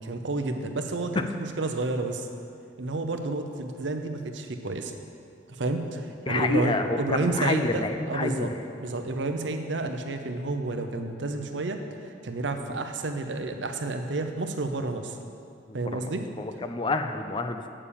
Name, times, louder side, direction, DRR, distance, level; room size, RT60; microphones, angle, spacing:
voice 1, 0.0-2.3 2.8-4.9 5.6-8.5 8.8-15.2 15.7-16.2, right 2 dB, 85° right, 6 dB, 0.8 m, -30 dB
voice 2, 6.3-8.5 15.9-16.1 16.4-17.7, left 2 dB, 25° left, 7 dB, 0.5 m, -28 dB
8.7 x 6.9 x 7.0 m, 2.5 s
head